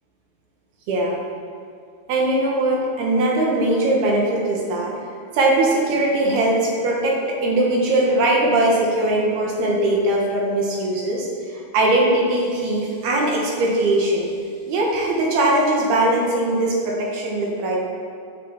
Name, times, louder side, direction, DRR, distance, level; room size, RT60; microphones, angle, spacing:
voice 1, 0.9-1.2 2.1-5.0 5.3-14.3 14.7-17.8, right 1 dB, 80° right, -2 dB, 3.8 m, -20 dB
9.0 x 8.2 x 7.6 m, 2.3 s
omnidirectional pair, 4.4 m